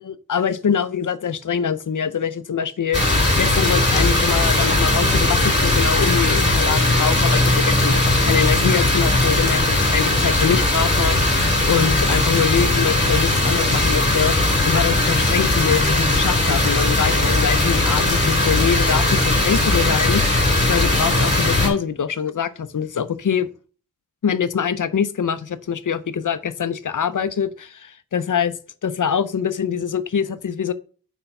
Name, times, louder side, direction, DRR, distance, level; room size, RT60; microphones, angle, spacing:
voice 1, 0.0-11.3 11.7-23.5 24.2-28.5 28.8-30.7, left 7 dB, 65° left, 0.6 m, -24 dB
Heavy rain and thunderstorm, 2.9-21.7, left 2 dB, 35° left, 2.5 m, -18 dB
4.5 x 4.4 x 5.3 m
wide cardioid pair, 60°, 34 cm